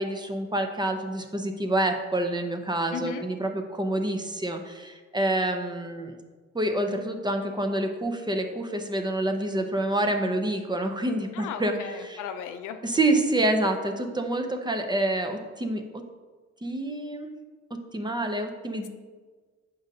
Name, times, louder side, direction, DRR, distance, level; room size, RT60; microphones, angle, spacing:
voice 1, 0.0-6.1 6.5-11.7 12.0-12.2 12.8-16.0 16.6-17.3 17.9-18.9, right 1 dB, 15° right, 5 dB, 0.6 m, -27 dB
voice 2, 2.9-3.2 11.3-12.8, left 8 dB, 85° left, 8 dB, 0.6 m, -36 dB
7.8 x 5.3 x 2.7 m, 1.4 s
cardioid pair, 90°, 30 cm